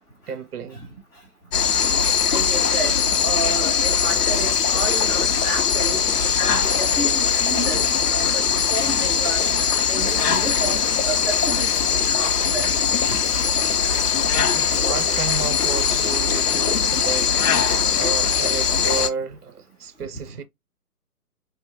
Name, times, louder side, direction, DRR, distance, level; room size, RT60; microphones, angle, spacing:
voice 1, 0.3-0.8 14.5-17.5 18.0-20.4, right 5 dB, 80° right, 0.6 m, -32 dB
sound 1, 1.5-19.1, left 6 dB, 80° left, 0.7 m, -21 dB
voice 2, 2.3-6.0 6.4-7.8 8.1-8.4 8.7-9.4 9.9-12.7 13.1-13.2, right 2 dB, 5° left, 0.9 m, -31 dB
2.8 x 2.2 x 2.6 m
figure-of-eight pair, 135°, 46 cm